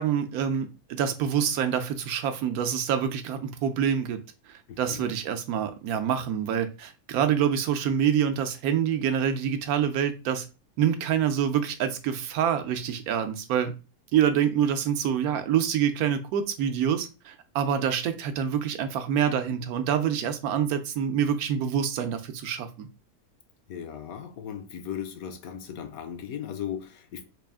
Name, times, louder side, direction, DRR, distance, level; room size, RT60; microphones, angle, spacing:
voice 1, 0.0-4.2 4.5-10.5 10.8-13.7 14.1-22.9, right 8 dB, 85° right, 1.1 m, -26 dB
voice 2, 4.7-5.1 23.7-27.2, left 9 dB, 75° left, 1.0 m, -37 dB
3.7 x 2.4 x 3.5 m
omnidirectional pair, 1.5 m